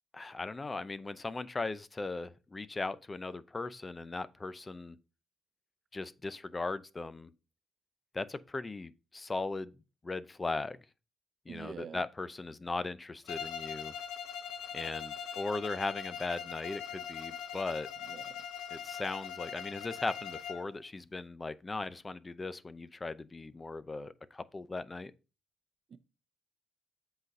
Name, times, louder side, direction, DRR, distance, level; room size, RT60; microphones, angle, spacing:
voice 1, 0.1-5.0 5.9-7.3 8.1-9.8 10.0-10.8 11.5-13.9 14.7-17.9 18.7-25.1, left 3 dB, 25° left, 0.6 m, -38 dB
voice 2, 11.5-12.0 18.1-18.4 25.9-26.0, right 7 dB, 50° right, 0.6 m, -45 dB
Bowed string instrument, 13.3-20.7, left 7 dB, 90° left, 0.9 m, -41 dB
7.9 x 4.1 x 5.3 m
cardioid pair, 90°, 0 cm